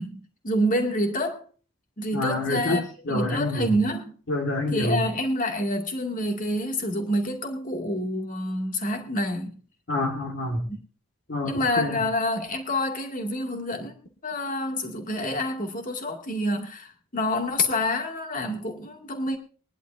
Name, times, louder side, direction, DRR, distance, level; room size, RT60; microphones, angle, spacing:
voice 1, 0.0-1.4 2.0-4.1 4.7-9.6 10.7-10.8 11.4-14.0 14.2-19.4, left 1 dB, 40° left, 2.3 m, -27 dB
voice 2, 2.1-3.7 4.3-5.0 9.9-10.7 11.3-12.0, left 2 dB, 55° left, 1.9 m, -27 dB
22.5 x 11.0 x 2.6 m
head